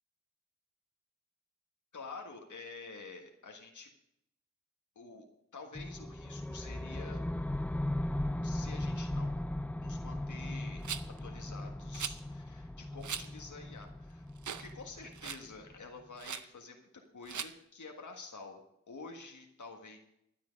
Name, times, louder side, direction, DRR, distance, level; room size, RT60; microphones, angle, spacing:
voice 1, 1.9-3.9 4.9-5.3 5.5-7.2 8.4-9.4 9.8-10.9 11.2-14.3 14.6-16.9 17.1-18.6 18.9-20.0, left 4 dB, 90° left, 2 dB, 1.6 m, -49 dB
sound 1, 5.7-15.8, left 1 dB, 5° left, 0.3 m, -38 dB
Rattle, 10.8-11.2 11.9-12.2 13.0-13.3 13.8-13.9 14.4-14.7 15.0-15.5 16.2-16.5 17.3-17.5, right 7 dB, 80° right, 0.6 m, -39 dB
12.5 x 10.0 x 5.3 m, 0.77 s
cardioid pair, 55°, 29 cm